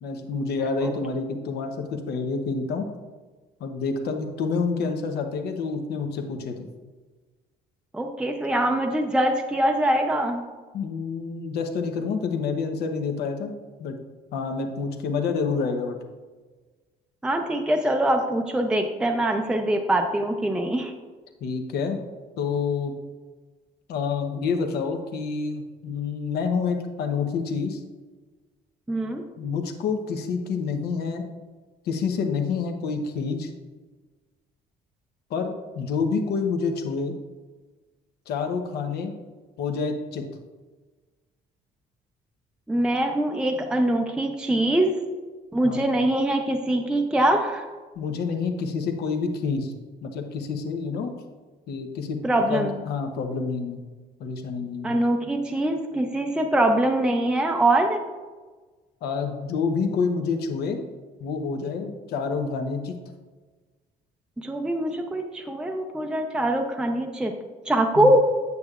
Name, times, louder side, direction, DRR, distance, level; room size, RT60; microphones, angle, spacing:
voice 1, 0.0-2.9 3.6-6.7 10.7-13.5 13.8-14.0 14.3-16.0 21.4-22.0 22.4-22.9 23.9-27.8 29.4-31.2 31.8-33.5 35.3-37.1 38.3-39.1 39.6-40.2 45.6-45.9 48.0-49.7 50.0-51.1 51.7-52.2 52.5-53.8 54.2-54.9 59.0-60.8 61.2-63.0 68.0-68.1, left 5 dB, 70° left, 5 dB, 0.9 m, -28 dB
voice 2, 7.9-10.4 17.2-20.9 28.9-29.2 42.7-44.9 45.5-47.6 52.2-52.8 54.8-58.0 64.4-67.3 67.7-68.2, right 1 dB, 5° right, 3 dB, 0.5 m, -23 dB
8.2 x 6.6 x 2.4 m, 1.3 s
cardioid pair, 110°, 17 cm